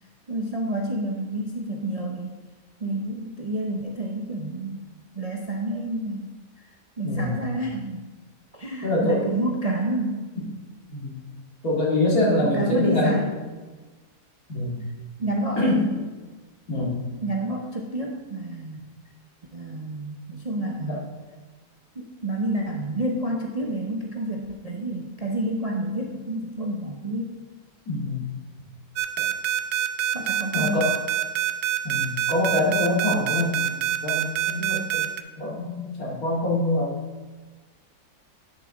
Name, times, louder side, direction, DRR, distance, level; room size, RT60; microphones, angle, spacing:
voice 1, 0.3-2.3 2.8-4.9 5.1-6.3 6.6-6.7 7.0-8.1 8.5-10.2 12.4-13.3 15.2-15.6 17.2-18.8 19.5-21.0 21.9-27.4 30.1-30.9, right 1 dB, 35° right, -1 dB, 0.6 m, -29 dB
voice 2, 7.0-7.4 8.8-9.5 10.3-10.5 10.9-11.1 11.6-13.3 14.5-14.8 15.6-16.0 16.7-17.0 20.9-21.0 27.9-28.3 30.5-30.9 31.8-35.1 35.4-36.9, left 1 dB, 65° left, -4 dB, 2.7 m, -25 dB
sound 1, 29.0-35.2, right 12 dB, 85° right, 1.2 m, -25 dB
11.0 x 6.9 x 3.8 m, 1.3 s
omnidirectional pair, 1.7 m